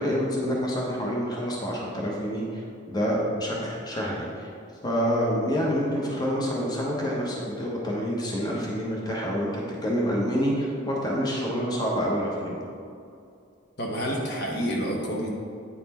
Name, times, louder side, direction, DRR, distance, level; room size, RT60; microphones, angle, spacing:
voice 1, 0.0-4.5 4.8-9.5 9.8-12.6, equal, 20° left, -3 dB, 1.0 m, -27 dB
voice 2, 13.8-15.3, equal, 55° left, -1 dB, 1.0 m, -28 dB
9.1 x 4.2 x 4.2 m, 2.5 s
head